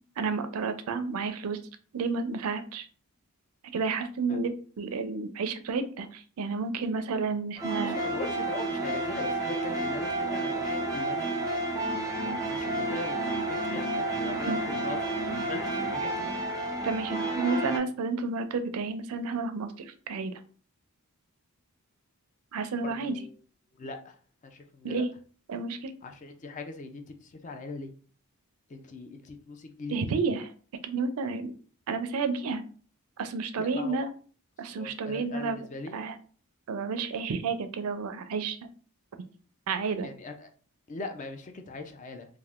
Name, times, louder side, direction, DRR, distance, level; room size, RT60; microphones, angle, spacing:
voice 1, 0.2-1.6 1.9-2.9 3.7-8.0 14.5-14.6 16.8-20.3 22.5-23.2 24.8-25.1 25.5-25.9 29.9-30.5 30.8-31.5 31.9-32.6 33.2-34.1 34.6-35.6 35.9-36.2 36.7-38.6 39.7-40.1, right 4 dB, 80° right, 10 dB, 0.4 m, -31 dB
sound 1, 7.6-17.8, right 2 dB, 15° right, 0.5 m, -31 dB
voice 2, 7.8-11.7 12.2-16.3 22.8-23.3 23.8-24.2 24.4-25.0 26.0-27.9 28.7-30.0 33.6-34.1 34.7-36.0 40.0-40.5 40.9-42.3, left 3 dB, 35° left, 6 dB, 0.4 m, -41 dB
3.4 x 2.5 x 2.4 m, 0.41 s
head